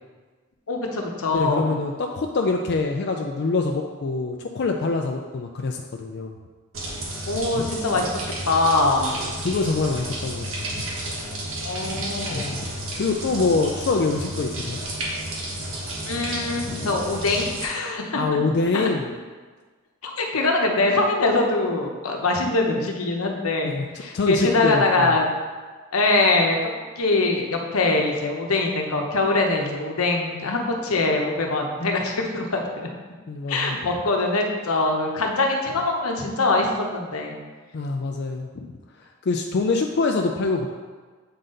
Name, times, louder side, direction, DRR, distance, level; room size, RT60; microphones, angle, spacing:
voice 1, 0.7-1.7 7.3-8.1 8.5-9.2 11.6-12.6 16.1-18.2 18.7-18.9 20.0-25.3 25.9-32.9 33.5-37.4, left 2 dB, 85° left, 1 dB, 0.9 m, -23 dB
voice 2, 1.3-6.3 7.5-7.7 9.1-10.4 10.8-10.9 11.9-12.0 12.3-12.5 13.0-14.8 16.7-16.9 18.2-19.1 23.6-23.9 24.1-25.2 33.3-33.8 37.7-38.7 39.3-40.7, left 3 dB, 50° left, 2 dB, 0.4 m, -25 dB
sound 1, 6.7-17.7, right 1 dB, 65° right, 1.3 m, -32 dB
7.7 x 4.0 x 3.8 m, 1.4 s
head